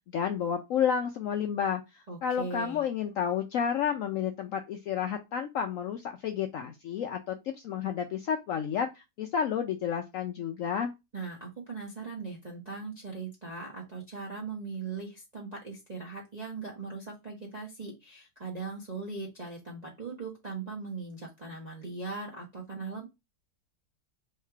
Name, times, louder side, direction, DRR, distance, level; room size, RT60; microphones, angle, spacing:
voice 1, 0.1-10.9, left 8 dB, 75° left, 5 dB, 0.7 m, -31 dB
voice 2, 2.1-2.8 11.1-23.0, right 4 dB, 30° right, -4 dB, 0.8 m, -39 dB
3.2 x 2.9 x 4.5 m, 0.23 s
omnidirectional pair, 1.8 m